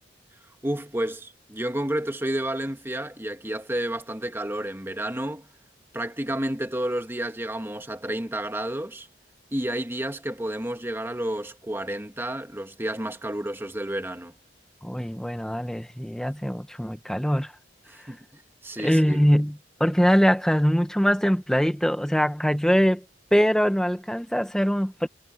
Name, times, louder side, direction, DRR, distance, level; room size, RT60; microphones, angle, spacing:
voice 1, 0.6-5.5 5.9-9.1 9.5-14.3 17.9-19.2, right 1 dB, 15° right, 1.7 m, -31 dB
voice 2, 14.8-17.5 18.8-23.0 23.3-25.1, equal, 5° left, 1.4 m, -22 dB
head